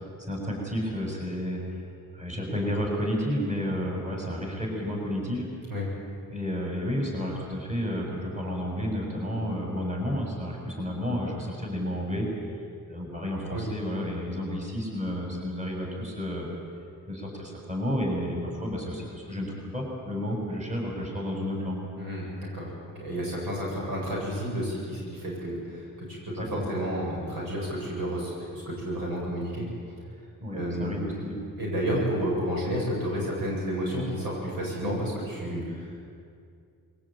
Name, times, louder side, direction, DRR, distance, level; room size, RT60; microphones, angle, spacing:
voice 1, 0.3-1.6 2.1-5.4 6.3-12.3 12.9-16.5 17.1-21.8 26.3-26.7 30.4-31.3, equal, 20° right, -1 dB, 7.1 m, -31 dB
voice 2, 23.0-29.7 30.5-31.0 31.6-36.0, equal, 90° right, -3 dB, 7.9 m, -31 dB
22.5 x 17.0 x 9.1 m, 2.3 s
cardioid pair, 90°, 34 cm